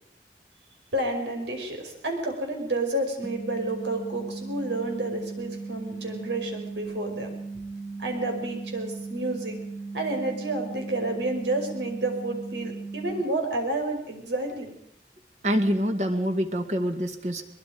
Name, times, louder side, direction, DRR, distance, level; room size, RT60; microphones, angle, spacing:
voice 1, 0.9-7.3 8.0-9.6 9.9-14.7, right 2 dB, 85° right, 3 dB, 5.5 m, -30 dB
sound 1, 3.2-13.2, right 3 dB, 10° left, 1.4 m, -37 dB
voice 2, 15.4-17.4, equal, 40° right, 6 dB, 2.1 m, -26 dB
23.0 x 21.5 x 5.2 m, 0.75 s
head